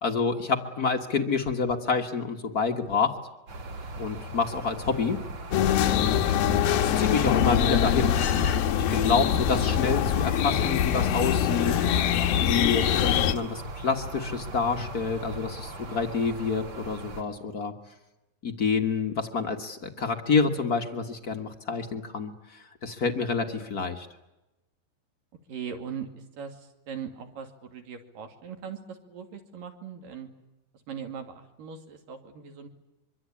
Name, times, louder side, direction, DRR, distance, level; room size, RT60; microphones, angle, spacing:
voice 1, 0.0-3.1 4.0-5.2 5.9-8.2 8.7-11.8 12.4-17.7 18.4-24.1, left 5 dB, 50° left, 5 dB, 1.1 m, -28 dB
sound 1, 3.5-17.2, right 2 dB, 45° right, 3.6 m, -39 dB
sound 2, 5.5-13.4, left 9 dB, 90° left, 3.0 m, -24 dB
voice 2, 25.5-30.3 30.7-32.7, right 7 dB, 70° right, 5 dB, 4.1 m, -40 dB
25.0 x 24.5 x 8.6 m, 0.97 s
omnidirectional pair, 4.1 m